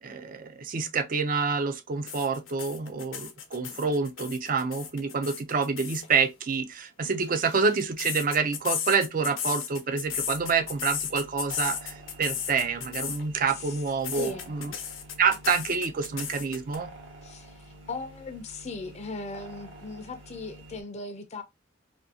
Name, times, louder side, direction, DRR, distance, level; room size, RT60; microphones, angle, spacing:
voice 1, 0.0-14.7 15.2-16.9, right 5 dB, 45° right, 0.4 m, -27 dB
sound 1, 2.1-6.1 7.1-13.2 13.5-16.8, left 8 dB, 85° left, 0.7 m, -35 dB
sound 2, 10.0-20.8, right 1 dB, 65° right, 0.9 m, -48 dB
voice 2, 14.1-14.5 17.2-21.4, left 3 dB, 35° left, 0.5 m, -38 dB
2.7 x 2.6 x 2.7 m
head